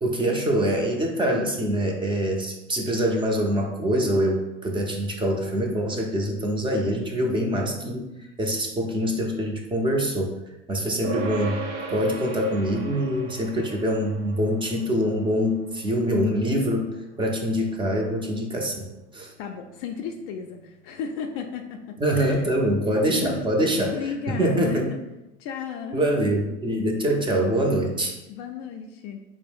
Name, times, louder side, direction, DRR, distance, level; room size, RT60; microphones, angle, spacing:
voice 1, 0.0-8.1 8.4-10.3 10.7-11.7 11.9-18.9 19.1-19.3 22.0-24.0 24.3-24.9 25.9-28.1, equal, 15° right, 1 dB, 0.5 m, -24 dB
sound 1, 11.0-20.7, right 3 dB, 70° right, 0.7 m, -38 dB
voice 2, 19.4-22.5 23.1-24.8 25.4-26.0 28.3-29.2, left 7 dB, 40° left, 4 dB, 0.4 m, -34 dB
4.4 x 2.0 x 3.3 m, 0.97 s
figure-of-eight pair, 80°, 36 cm